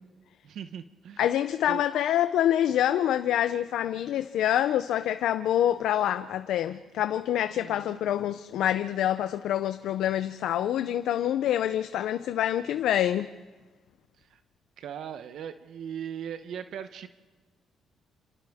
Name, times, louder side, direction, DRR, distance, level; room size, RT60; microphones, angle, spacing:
voice 1, 0.4-1.3 1.7-1.8 7.5-8.0 14.2-14.4 14.8-17.1, right 8 dB, 75° right, 0.8 m, -39 dB
voice 2, 1.2-13.3, left 11 dB, 80° left, 0.5 m, -26 dB
28.0 x 27.0 x 3.6 m
cardioid pair, 90°, 0 cm